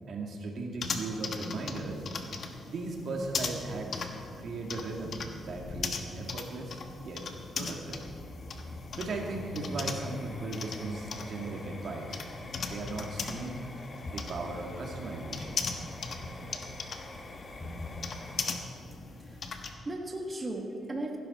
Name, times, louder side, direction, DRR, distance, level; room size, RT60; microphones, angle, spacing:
voice 1, 0.1-2.0 2.7-4.1 4.4-7.3 7.6-8.0 9.0-12.2 12.6-13.6 14.1-15.6, right 3 dB, 60° right, 1 dB, 1.9 m, -37 dB
sound 1, 0.8-19.7, left 4 dB, 55° left, 1.1 m, -39 dB
sound 2, 6.5-18.6, left 2 dB, 40° left, 1.6 m, -44 dB
voice 2, 18.9-21.2, right 1 dB, 25° right, 1 dB, 1.4 m, -38 dB
16.5 x 11.0 x 4.2 m, 2.5 s
cardioid pair, 95°, 0 cm